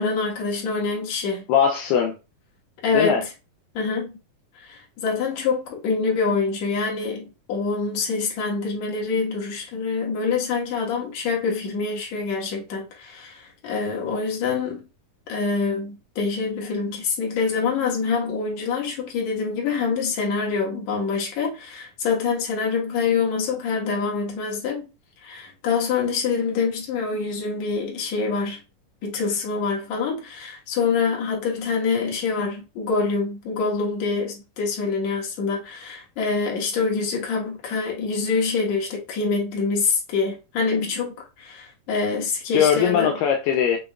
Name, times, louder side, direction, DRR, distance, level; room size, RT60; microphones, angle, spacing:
voice 1, 0.0-1.4 2.8-3.3 3.7-4.1 4.6-14.9 15.3-24.9 25.2-28.6 29.0-43.1, left 4 dB, 60° left, 2.4 m, -25 dB
voice 2, 1.5-2.2 2.9-3.2 42.5-43.8, left 8 dB, 85° left, 2.2 m, -20 dB
6.9 x 3.1 x 2.3 m
omnidirectional pair, 3.9 m